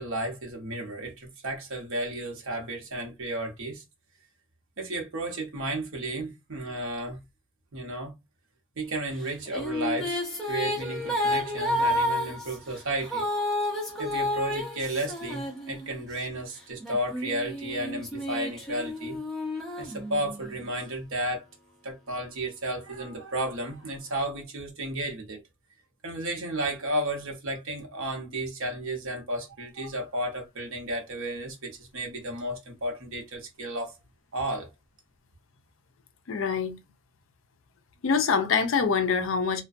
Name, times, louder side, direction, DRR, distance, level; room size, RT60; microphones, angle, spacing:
voice 1, 0.0-3.8 4.8-7.2 7.7-8.1 8.8-10.2 10.5-13.3 14.0-19.2 19.8-21.4 21.8-25.4 26.0-34.0 34.3-34.7, right 1 dB, 65° right, 0.8 m, -33 dB
sound 1, 9.2-16.2 16.8-20.6, left 1 dB, ahead, 0.6 m, -31 dB
voice 2, 36.3-36.8 38.0-39.6, left 5 dB, 60° left, 0.4 m, -25 dB
2.3 x 2.2 x 2.5 m
head